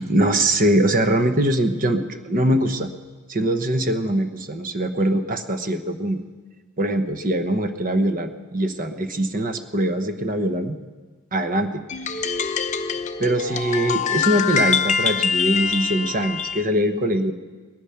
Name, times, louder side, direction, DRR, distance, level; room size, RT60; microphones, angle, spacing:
voice 1, 0.0-2.9 3.3-6.2 6.8-10.8 11.3-12.4 13.2-17.3, right 1 dB, 40° right, 8 dB, 1.0 m, -22 dB
sound 1, 11.9-16.6, left 6 dB, 35° left, 0.6 m, -24 dB
19.5 x 11.5 x 5.8 m, 1.4 s
head